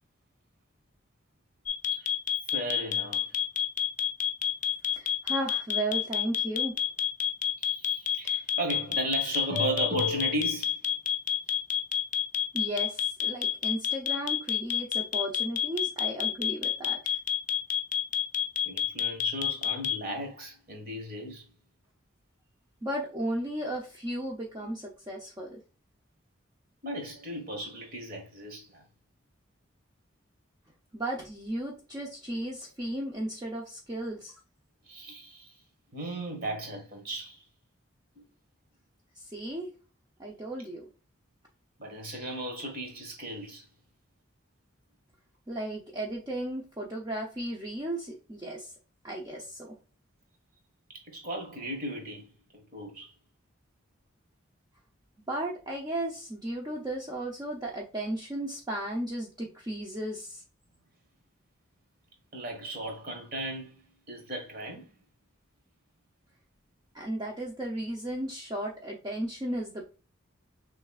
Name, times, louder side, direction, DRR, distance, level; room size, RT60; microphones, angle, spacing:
sound 1, 1.7-19.9, left 9 dB, 40° left, 0.5 m, -28 dB
voice 1, 2.5-3.3 7.6-10.8 18.6-21.5 24.6-24.7 26.8-28.8 34.9-35.5 35.9-37.4 38.1-38.2 41.8-43.6 50.9-53.1 62.3-64.9, right 1 dB, 50° right, 1.4 m, -35 dB
voice 2, 5.0-6.7 12.5-17.2 22.8-25.6 30.9-34.3 39.2-39.7 40.2-40.9 45.5-48.7 49.0-49.7 55.3-60.4 66.9-69.8, right 1 dB, 20° right, 0.6 m, -35 dB
6.2 x 3.2 x 2.3 m
head